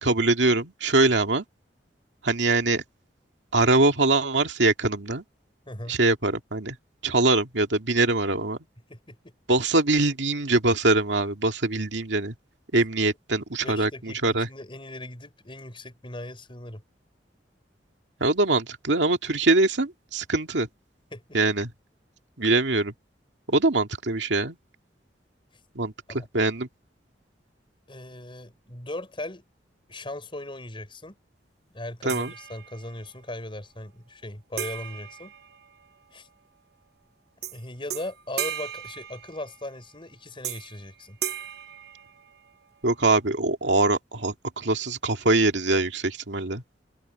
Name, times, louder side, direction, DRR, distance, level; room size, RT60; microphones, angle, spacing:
voice 1, 0.0-1.4 2.2-2.8 3.5-5.2 5.9-6.8 7.0-8.6 9.5-12.3 12.7-14.5 18.2-20.7 21.3-21.7 22.4-22.9 23.5-24.6 25.7-26.7 32.0-32.3 42.8-46.6, right 2 dB, 80° right, 2.2 m, -23 dB
voice 2, 5.7-6.0 8.9-9.3 13.6-16.8 21.1-21.4 26.1-26.3 27.9-29.4 29.9-31.2 31.7-35.3 36.1-36.3 37.5-41.2, left 1 dB, 30° left, 5.4 m, -38 dB
sound 1, 32.1-33.1 34.6-36.1 37.4-37.6 37.9-39.7 40.4-40.8 41.2-42.6, right 10 dB, 60° right, 1.0 m, -36 dB
open air
head